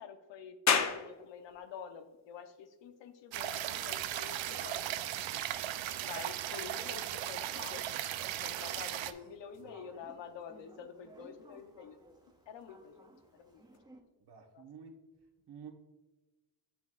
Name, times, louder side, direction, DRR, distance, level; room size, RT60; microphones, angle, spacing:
voice 1, 0.0-4.9 6.0-12.0 12.5-13.1 13.3-13.6 14.5-14.6, left 7 dB, 75° left, 8 dB, 0.8 m, -48 dB
sound 1, 0.7-13.8, left 6 dB, 40° left, 0.6 m, -41 dB
sound 2, 3.3-9.1, right 12 dB, 85° right, 0.6 m, -37 dB
sound 3, 8.5-14.0, right 2 dB, 10° right, 0.7 m, -59 dB
voice 2, 9.5-10.0 14.2-15.0 15.5-15.7, right 6 dB, 60° right, 3 dB, 1.2 m, -51 dB
9.3 x 5.8 x 2.3 m, 1.1 s
cardioid pair, 115°, 45 cm